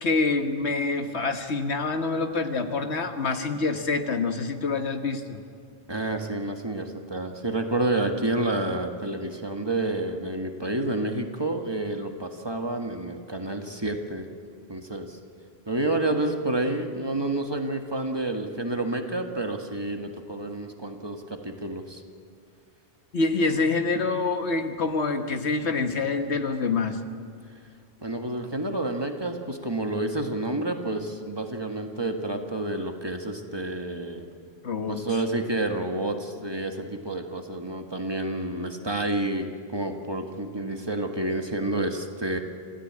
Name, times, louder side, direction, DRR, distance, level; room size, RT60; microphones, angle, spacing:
voice 1, 0.0-5.4 23.1-27.0 34.6-35.0, left 3 dB, 85° left, 6 dB, 1.7 m, -26 dB
voice 2, 5.9-14.3 14.7-15.2 15.7-22.0 28.0-34.3 34.9-42.4, right 2 dB, 25° right, 3 dB, 1.6 m, -29 dB
26.5 x 16.0 x 8.8 m, 2.2 s
omnidirectional pair, 1.1 m